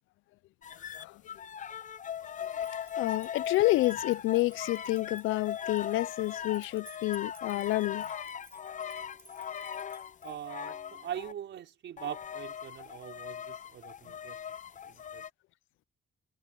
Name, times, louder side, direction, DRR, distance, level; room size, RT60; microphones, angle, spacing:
sound 1, 0.6-11.3 12.0-15.3, left 8 dB, 40° left, 0.6 m, -39 dB
voice 1, 0.8-1.2 2.4-2.5 3.0-8.1, left 18 dB, 90° left, 0.5 m, -29 dB
sound 2, 2.3-10.6, right 2 dB, 10° right, 7.0 m, -59 dB
voice 2, 10.2-14.4 14.8-15.2, right 10 dB, 70° right, 5.3 m, -42 dB
cardioid pair, 90°, 20 cm